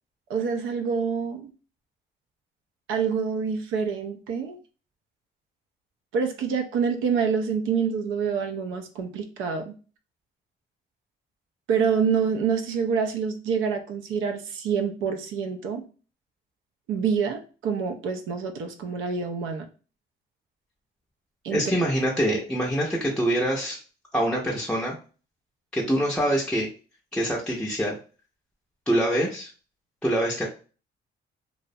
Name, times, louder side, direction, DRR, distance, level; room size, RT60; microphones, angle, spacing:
voice 1, 0.3-1.5 2.9-4.6 6.1-9.7 11.7-15.8 16.9-19.7 21.4-21.6, right 6 dB, 85° right, 5 dB, 0.5 m, -26 dB
voice 2, 21.5-23.8 24.1-24.9 25.7-26.7 27.1-27.9 28.9-29.5 30.0-30.4, right 1 dB, 5° left, -2 dB, 0.5 m, -25 dB
2.4 x 2.0 x 2.6 m, 0.36 s
cardioid pair, 90°, 20 cm